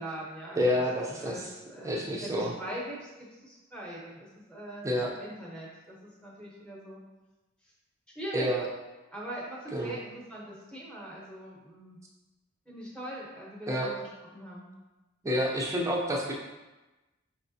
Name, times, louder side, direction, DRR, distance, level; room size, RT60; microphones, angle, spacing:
voice 1, 0.0-0.6 1.2-4.9 5.1-7.0 8.1-8.5 9.1-12.0 12.7-14.7, right 1 dB, 5° left, -5 dB, 0.9 m, -42 dB
voice 2, 0.6-1.5 1.8-2.5 4.8-5.1 8.3-8.7 9.7-9.9 13.7-13.9 15.2-16.3, equal, 15° right, -2 dB, 0.5 m, -28 dB
4.9 x 3.3 x 2.7 m, 1.1 s
head